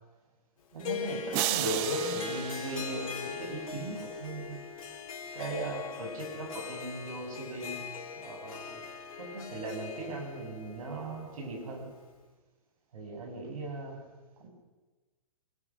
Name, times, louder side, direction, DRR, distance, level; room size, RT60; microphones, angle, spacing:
voice 1, 0.7-4.6 5.3-7.8 8.2-8.8 9.2-11.9 12.9-14.0 14.4-14.5, right 2 dB, 65° right, 2 dB, 7.7 m, -38 dB
Harp, 0.8-12.1, left 6 dB, 65° left, 4.2 m, -40 dB
sound 1, 1.3-3.7, right 15 dB, 30° right, 0.9 m, -34 dB
25.0 x 20.0 x 6.3 m, 1.2 s
hypercardioid pair, 130°, 19 cm